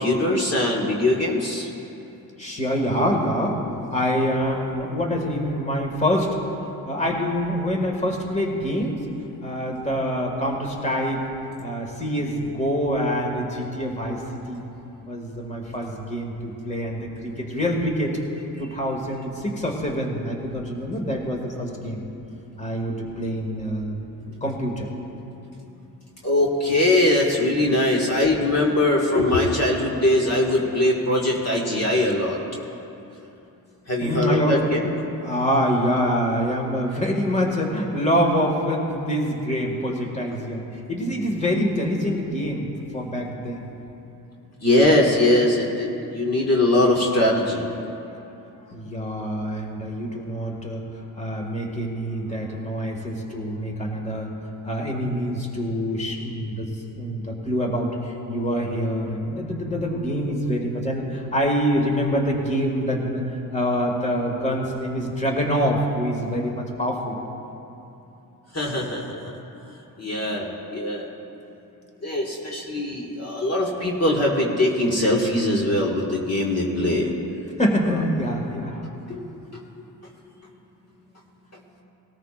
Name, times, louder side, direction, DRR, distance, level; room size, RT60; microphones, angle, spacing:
voice 1, 0.0-1.7 26.2-32.4 33.9-35.0 44.6-47.7 68.5-69.4 70.0-71.1 72.0-77.1 79.1-79.2 79.5-79.6, left 1 dB, 40° left, -3 dB, 1.9 m, -21 dB
voice 2, 2.4-3.6 3.9-6.4 6.9-9.0 9.4-11.2 11.6-14.6 15.1-18.2 18.6-22.0 22.6-24.0 24.2-24.9 34.0-34.7 35.2-42.7 42.9-43.7 48.7-50.9 51.2-54.3 54.6-56.7 57.0-63.3 63.5-67.2 77.6-78.9, equal, 15° left, 0 dB, 2.0 m, -25 dB
19.5 x 13.5 x 2.5 m, 2.8 s
cardioid pair, 75°, 40 cm